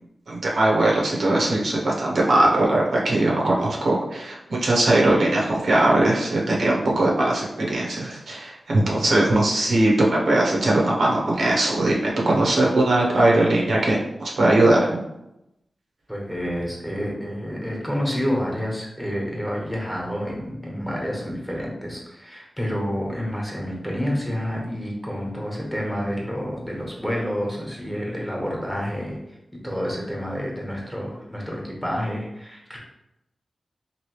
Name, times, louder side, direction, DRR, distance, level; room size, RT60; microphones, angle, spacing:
voice 1, 0.3-15.0, right 1 dB, 85° right, -3 dB, 0.7 m, -20 dB
voice 2, 16.1-29.4 29.6-32.8, equal, 5° left, -2 dB, 1.1 m, -29 dB
3.0 x 2.6 x 3.0 m, 0.88 s
cardioid pair, 65°, 0 cm